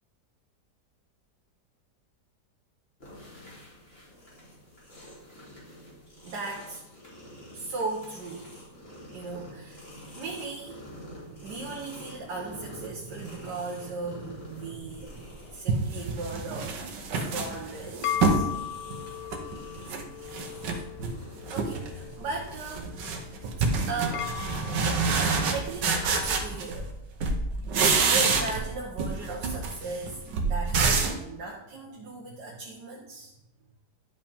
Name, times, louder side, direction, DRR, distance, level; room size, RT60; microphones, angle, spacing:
sound 1, 3.0-22.2, left 1 dB, 35° left, 2.8 m, -48 dB
voice 1, 6.2-6.8 7.5-8.6 9.1-9.9 10.1-10.8 11.1-16.8 17.1-18.7 21.5-22.9 23.4-24.4 24.7-26.9 27.9-33.3, right 3 dB, 70° right, -2 dB, 1.7 m, -37 dB
sound 2, 15.0-15.1 15.7-18.5 18.9-20.0 20.3-21.2 21.5-21.9 22.2-26.9 27.2-28.7 29.0-31.2, right 4 dB, 90° right, 1.6 m, -27 dB
sound 3, 17.4-25.9, left 11 dB, 70° left, 0.7 m, -38 dB
11.0 x 5.2 x 3.5 m, 0.88 s
omnidirectional pair, 1.8 m